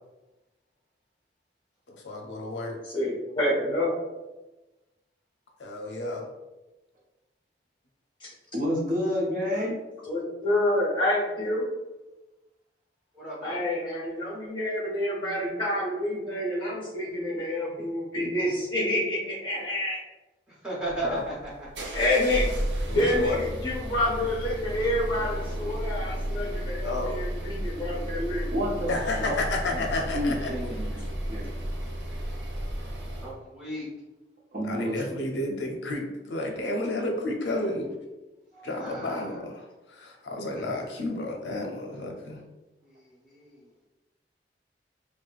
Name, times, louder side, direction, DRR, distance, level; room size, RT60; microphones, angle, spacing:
voice 1, 1.9-2.8 5.6-6.3 21.0-21.2 22.9-23.4 26.8-27.2 28.9-30.5 30.8-31.0 34.6-37.9 38.6-42.4, left 2 dB, 80° left, 1 dB, 0.6 m, -31 dB
voice 2, 2.9-3.9 8.2-8.3 10.1-11.7 13.4-20.0 21.9-22.5 22.9-28.5, left 1 dB, 30° left, -3 dB, 1.1 m, -28 dB
voice 3, 8.5-9.7 28.5-28.9 29.2-29.4 29.7-29.8 30.1-31.5 34.5-35.2 38.5-38.7, equal, 45° right, -3 dB, 0.8 m, -29 dB
voice 4, 13.1-13.6 20.5-21.3 30.4-30.6 33.2-33.9 38.8-39.2 40.5-40.8 42.8-43.6, right 2 dB, 5° right, -8 dB, 1.2 m, -36 dB
sound 1, 20.8-33.3, equal, 80° right, 0.7 m, -33 dB
4.4 x 2.3 x 2.4 m, 1.1 s
head